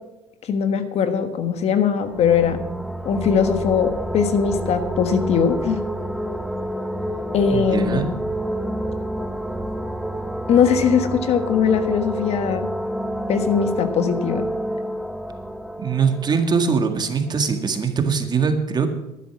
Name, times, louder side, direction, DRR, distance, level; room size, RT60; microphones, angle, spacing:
voice 1, 0.4-2.6 3.0-5.8 7.3-8.1 10.5-12.7 13.3-14.5, left 7 dB, 55° left, 9 dB, 1.4 m, -20 dB
sound 1, 1.9-17.5, right 1 dB, ahead, 0.6 m, -29 dB
voice 2, 7.5-8.1 15.8-18.9, right 5 dB, 30° right, 6 dB, 1.8 m, -22 dB
12.0 x 10.5 x 6.1 m, 0.92 s
supercardioid pair, 95°, 13 cm